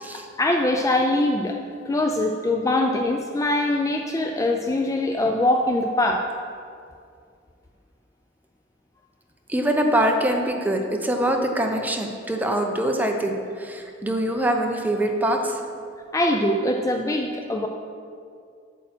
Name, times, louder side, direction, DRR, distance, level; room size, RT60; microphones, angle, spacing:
voice 1, 0.1-1.6 1.9-6.3 16.1-17.7, left 1 dB, 15° left, 3 dB, 0.4 m, -23 dB
voice 2, 9.5-15.6, right 1 dB, 10° right, 3 dB, 0.7 m, -24 dB
8.4 x 7.1 x 4.3 m, 2.3 s
head